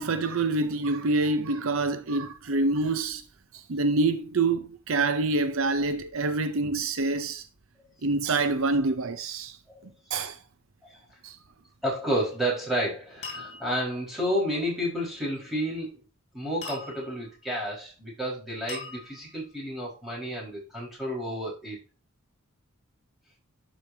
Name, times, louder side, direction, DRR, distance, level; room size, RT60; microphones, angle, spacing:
voice 1, 0.0-3.2 3.5-7.5 8.0-9.6 10.1-10.4 11.2-11.4, right 3 dB, 70° right, 0.6 m, -26 dB
voice 2, 11.8-16.0 16.3-21.8, equal, ahead, 4.6 m, -31 dB
sound 1, 12.2-12.6 13.2-13.9 16.6-17.3 18.7-19.5, left 4 dB, 30° left, 3.8 m, -41 dB
12.0 x 5.3 x 2.7 m
head